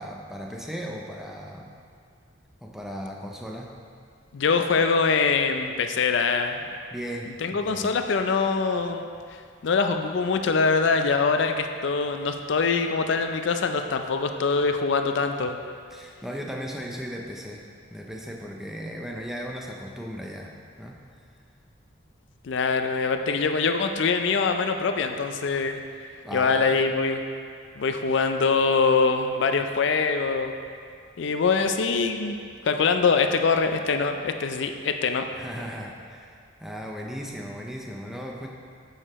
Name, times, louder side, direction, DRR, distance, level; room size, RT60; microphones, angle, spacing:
voice 1, 0.0-1.7 2.6-3.7 6.9-7.9 15.9-17.6 17.9-20.5 20.8-21.0 26.2-26.9 35.3-38.5, equal, ahead, -1 dB, 0.5 m, -36 dB
voice 2, 4.3-6.6 7.4-15.6 22.4-25.8 26.3-27.2 27.8-30.5 31.2-32.4 32.6-35.3, left 4 dB, 65° left, 6 dB, 0.4 m, -24 dB
8.7 x 6.5 x 3.0 m, 2.2 s
head